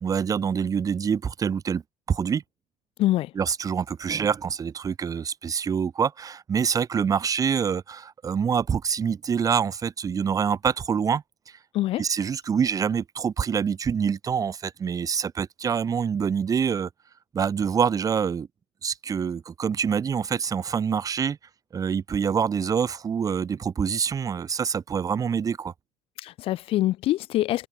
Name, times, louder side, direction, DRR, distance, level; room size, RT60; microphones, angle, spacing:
voice 1, 0.0-1.8 2.1-2.4 3.3-11.6 12.0-16.9 17.3-18.5 18.8-21.4 21.7-25.7, right 7 dB, 35° right, 3.0 m, -26 dB
voice 2, 3.0-3.3 11.7-12.0 26.2-27.7, left 15 dB, 60° left, 1.8 m, -24 dB
supercardioid pair, 100°, 11 cm